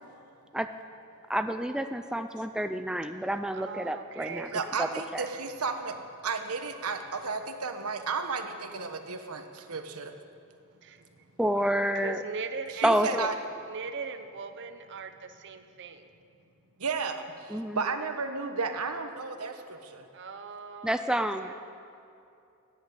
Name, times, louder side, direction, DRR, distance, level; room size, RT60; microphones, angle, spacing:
voice 1, 1.3-4.5 4.8-4.9 5.1-5.2 11.4-12.2 12.8-13.3 17.5-17.8 20.8-21.5, right 1 dB, 5° right, 8 dB, 0.4 m, -28 dB
voice 2, 3.5-4.9 10.8-11.0 11.9-13.0 13.7-16.1 20.1-21.5, right 5 dB, 55° right, 8 dB, 0.7 m, -40 dB
voice 3, 4.5-6.0 6.2-10.1 12.7-13.3 16.8-20.1, right 4 dB, 85° right, 6 dB, 1.2 m, -33 dB
13.5 x 10.0 x 8.4 m, 2.7 s
head